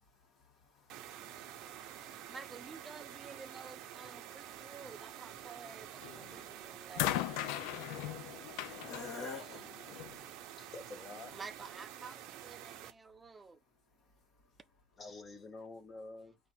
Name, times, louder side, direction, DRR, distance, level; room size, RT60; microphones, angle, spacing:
voice 1, 0.0-2.5 2.9-10.6 13.4-14.8, left 3 dB, 45° left, 1.7 m, -54 dB
sound 1, 0.9-12.9, right 12 dB, 65° right, 0.7 m, -49 dB
voice 2, 2.3-7.6 11.3-13.6, right 4 dB, 15° right, 0.5 m, -51 dB
sound 2, 6.0-6.4 6.9-10.2 11.2-11.3, left 14 dB, 85° left, 0.4 m, -38 dB
voice 3, 10.6-11.3 12.6-12.7 15.0-16.4, left 3 dB, 20° left, 1.0 m, -48 dB
4.8 x 2.5 x 4.3 m
cardioid pair, 165°, 0 cm